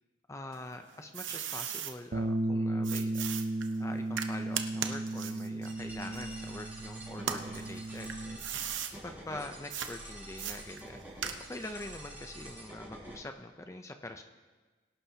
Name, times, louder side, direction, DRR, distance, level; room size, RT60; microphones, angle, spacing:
voice 1, 0.3-3.3 3.8-8.5 9.0-11.0 11.4-14.2, left 2 dB, 15° left, 6 dB, 0.5 m, -44 dB
sound 1, 0.5-1.9 2.8-6.7 7.2-8.9 9.7-9.9 10.4-11.7, right 8 dB, 90° right, 0.8 m, -38 dB
Bass guitar, 2.1-8.4, right 2 dB, 45° right, 0.6 m, -35 dB
sound 2, 5.7-13.1, right 1 dB, 10° right, 5.2 m, -47 dB
23.0 x 11.5 x 2.8 m, 1.3 s
head